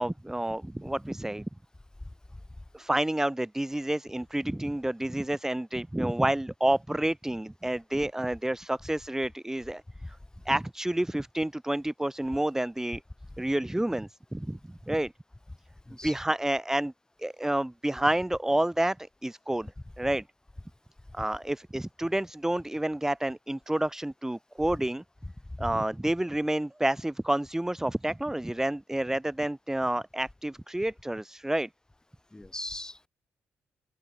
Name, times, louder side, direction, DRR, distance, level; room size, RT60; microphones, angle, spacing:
voice 1, 0.0-1.4 2.7-9.8 10.1-10.2 10.4-13.0 13.4-14.6 14.9-15.1 16.0-16.9 17.2-19.7 20.0-20.2 21.1-25.0 25.6-31.7, right 1 dB, 10° right, 1.7 m, -29 dB
voice 2, 32.3-33.1, left 1 dB, 15° left, 7.9 m, -39 dB
open air
supercardioid pair, 55°, 5 cm